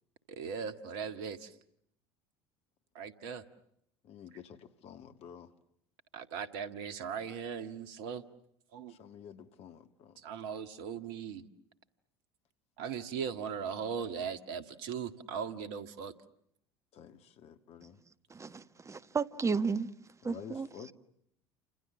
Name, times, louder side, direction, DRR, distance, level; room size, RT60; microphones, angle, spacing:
voice 1, 0.3-1.5 3.0-3.4 6.1-8.2 8.7-9.0 10.2-11.5 12.8-16.1, right 7 dB, 65° right, 1.8 m, -39 dB
voice 2, 4.0-5.5 6.6-6.7 8.9-10.2 16.9-18.0 20.2-20.9, left 8 dB, 50° left, 2.0 m, -50 dB
voice 3, 18.3-19.9 20.2-20.7, right 5 dB, 25° right, 1.4 m, -33 dB
29.5 x 27.0 x 7.3 m
hypercardioid pair, 70°, 13 cm